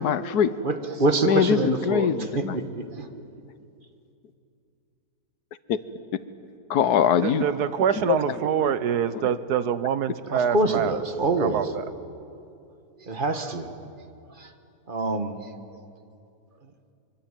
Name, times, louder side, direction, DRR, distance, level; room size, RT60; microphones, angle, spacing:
voice 1, 0.0-0.6 1.2-2.6 5.7-5.8 6.7-7.5 7.9-8.7 9.1-9.3, left 8 dB, 80° left, 14 dB, 1.4 m, -23 dB
voice 2, 0.6-2.2 2.5-3.1 10.3-11.7 13.0-13.7 14.3-14.5 14.9-15.8 16.6-16.7, right 2 dB, 35° right, 7 dB, 1.5 m, -26 dB
voice 3, 7.2-10.9 11.4-11.6, right 8 dB, 85° right, 14 dB, 1.5 m, -25 dB
24.0 x 24.0 x 9.0 m, 2.6 s
omnidirectional pair, 1.7 m